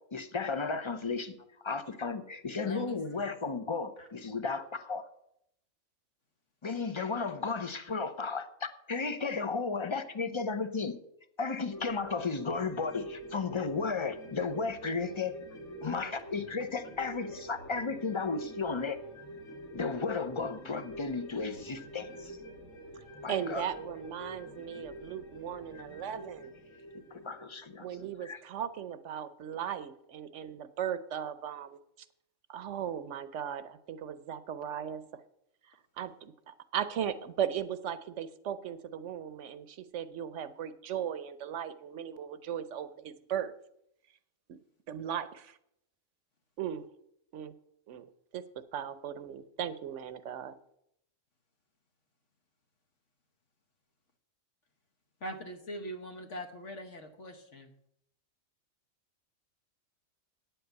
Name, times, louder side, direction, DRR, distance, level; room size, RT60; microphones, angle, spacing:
voice 1, 0.1-1.4 1.6-5.1 6.6-11.0 11.4-15.4 15.8-19.0 19.7-22.4 23.2-23.7 27.1-28.4, left 4 dB, 30° left, 11 dB, 0.6 m, -34 dB
voice 2, 2.6-3.2 4.0-4.1 55.2-57.7, equal, 65° left, 5 dB, 1.4 m, -42 dB
sound 1, 11.7-28.5 28.8-28.9, right 1 dB, 80° left, 2.3 m, -46 dB
voice 3, 23.3-26.5 27.8-31.8 32.5-35.0 36.0-43.5 44.5-44.6 44.9-45.6 46.6-46.8 47.3-47.5 47.9-48.1 48.3-48.4 48.7-50.5, right 9 dB, 65° right, 14 dB, 1.0 m, -37 dB
9.1 x 8.0 x 8.0 m, 0.76 s
omnidirectional pair, 1.4 m